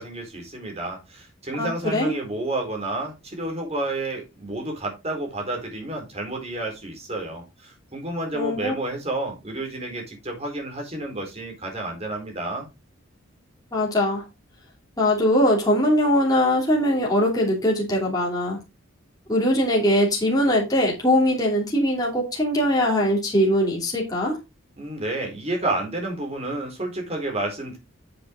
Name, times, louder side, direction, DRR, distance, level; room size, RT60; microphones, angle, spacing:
voice 1, 0.0-12.7 24.8-27.8, right 2 dB, 30° right, 4.2 m, -30 dB
voice 2, 1.6-2.1 8.3-8.7 13.7-14.2 15.0-18.6 19.3-24.4, equal, 20° left, 3.0 m, -21 dB
9.2 x 7.9 x 3.7 m
head